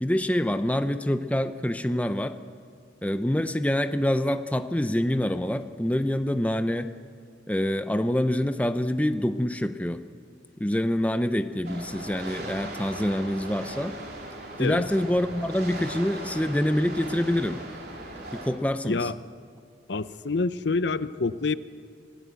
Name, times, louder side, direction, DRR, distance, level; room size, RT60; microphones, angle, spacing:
voice 1, 0.0-2.4 3.0-6.9 7.5-10.0 10.6-13.9 14.6-17.6 18.3-19.1, left 1 dB, 10° left, 9 dB, 0.6 m, -26 dB
sound 1, 11.6-18.5, right 2 dB, 55° right, 3.8 m, -39 dB
voice 2, 18.8-19.1 19.9-21.6, left 3 dB, 70° left, 14 dB, 0.7 m, -27 dB
27.0 x 17.0 x 8.2 m, 2.2 s
head